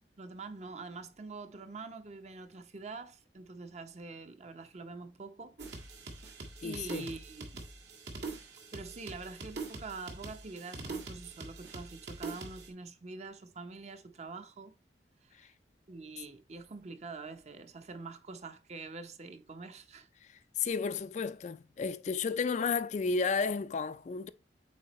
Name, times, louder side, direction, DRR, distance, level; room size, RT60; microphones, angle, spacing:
voice 1, 0.2-6.1 6.6-7.6 8.7-14.7 15.2-15.5 15.9-20.1, right 3 dB, 40° right, 0.7 m, -45 dB
sound 1, 5.6-12.7, right 3 dB, 75° right, 1.7 m, -44 dB
voice 2, 6.6-7.1 15.4-15.5 20.3-24.3, left 5 dB, 40° left, 0.3 m, -33 dB
8.4 x 4.2 x 3.0 m
head